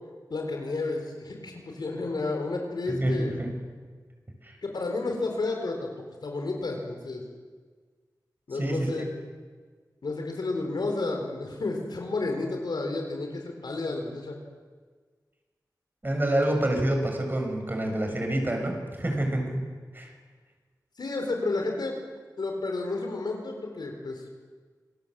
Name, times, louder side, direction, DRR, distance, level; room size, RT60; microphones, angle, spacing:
voice 1, 0.3-3.4 4.6-7.2 8.5-9.1 10.0-14.4 21.0-22.0 22.4-24.2, left 3 dB, 85° left, 2 dB, 4.4 m, -31 dB
voice 2, 2.9-3.5 4.4-4.6 8.6-8.9 16.0-19.7 19.9-20.1, right 1 dB, 30° right, 3 dB, 6.4 m, -27 dB
27.0 x 19.0 x 7.8 m, 1.5 s
wide cardioid pair, 80°, 7 cm